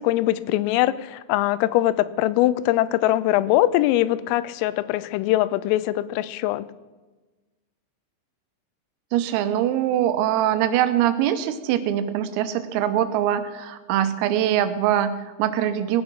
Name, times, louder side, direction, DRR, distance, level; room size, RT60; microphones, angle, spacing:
voice 1, 0.0-6.7, left 15 dB, 85° left, 17 dB, 3.2 m, -22 dB
voice 2, 9.1-16.0, right 11 dB, 90° right, 10 dB, 3.6 m, -23 dB
19.5 x 8.9 x 6.2 m, 1.2 s
omnidirectional pair, 6.0 m